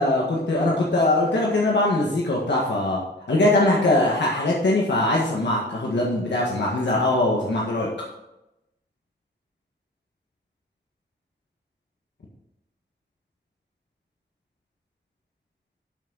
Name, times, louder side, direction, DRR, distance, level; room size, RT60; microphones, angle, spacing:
voice 1, 0.0-3.0 3.3-7.9, left 2 dB, 85° left, -4 dB, 1.7 m, -21 dB
12.0 x 6.3 x 4.0 m, 0.90 s
wide cardioid pair, 70°, 18 cm